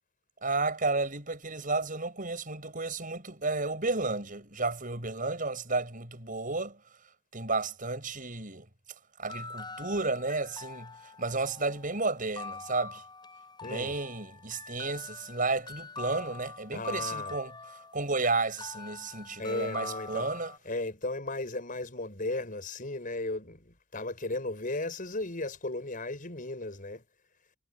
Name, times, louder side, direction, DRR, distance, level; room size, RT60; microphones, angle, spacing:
voice 1, 0.4-6.8 7.3-8.7 9.2-10.9 11.2-13.0 13.6-17.5 17.9-20.5, right 3 dB, 40° right, 7.8 m, -32 dB
sound 1, 9.2-20.6, left 3 dB, 20° left, 7.6 m, -43 dB
voice 2, 13.6-13.9 16.7-17.3 19.4-20.3 20.7-27.0, left 2 dB, 40° left, 5.4 m, -35 dB
head